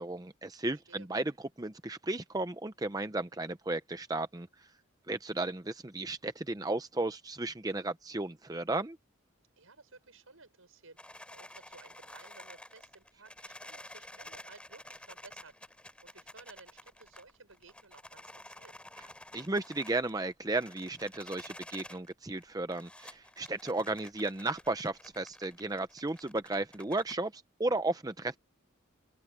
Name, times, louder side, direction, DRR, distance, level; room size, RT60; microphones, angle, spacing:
voice 1, 0.0-1.3 1.6-4.5 5.1-9.0 19.3-28.4, right 2 dB, 15° right, 0.7 m, -34 dB
voice 2, 0.7-1.1 9.6-18.7, right 3 dB, 80° right, 6.4 m, -56 dB
sound 1, 11.0-22.1 22.4-27.2, left 1 dB, 5° left, 5.2 m, -51 dB
open air
head